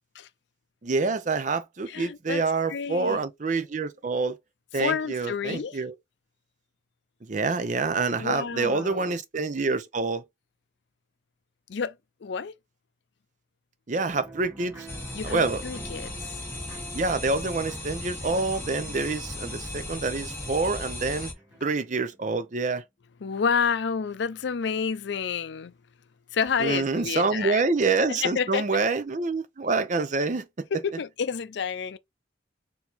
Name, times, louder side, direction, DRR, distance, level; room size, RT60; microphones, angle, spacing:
voice 1, 0.8-4.4 4.7-5.9 7.2-10.2 13.9-14.9 15.2-15.6 16.9-21.3 21.6-22.8 26.6-30.7, right 3 dB, 40° right, 0.6 m, -27 dB
voice 2, 1.9-2.4 2.7-3.2 4.8-5.8 8.2-9.2 11.7-12.0 12.2-12.5 15.1-16.4 23.2-25.7 26.3-27.6 28.1-28.8 30.7-32.0, left 6 dB, 65° left, 0.4 m, -29 dB
sound 1, 14.1-22.4, right 1 dB, 10° right, 1.5 m, -47 dB
sound 2, 14.9-21.3, left 1 dB, 15° left, 1.3 m, -37 dB
4.4 x 2.6 x 4.0 m
head